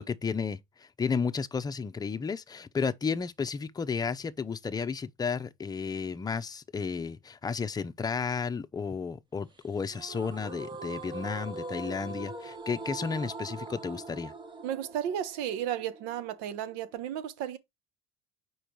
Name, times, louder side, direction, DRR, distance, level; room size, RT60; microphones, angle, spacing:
voice 1, 0.0-14.3, left 5 dB, 25° left, 0.8 m, -33 dB
sound 1, 9.9-16.9, right 3 dB, 30° right, 1.5 m, -42 dB
voice 2, 14.6-17.6, right 10 dB, 75° right, 1.0 m, -33 dB
5.0 x 4.8 x 4.6 m
supercardioid pair, 80°, 16 cm